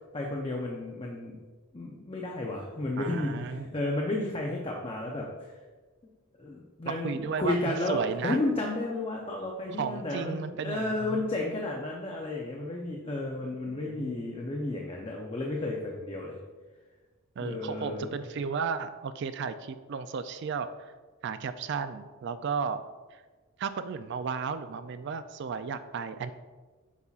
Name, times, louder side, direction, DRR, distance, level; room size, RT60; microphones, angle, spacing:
voice 1, 0.1-1.4 1.7-5.5 6.4-16.4 17.4-18.2, left 2 dB, 25° left, -1 dB, 0.6 m, -32 dB
voice 2, 3.0-3.7 6.9-8.4 9.8-11.3 13.7-14.3 17.4-20.9 21.2-22.8 23.1-23.2 23.6-26.3, right 5 dB, 50° right, 11 dB, 0.3 m, -34 dB
8.2 x 5.5 x 2.4 m, 1.3 s
head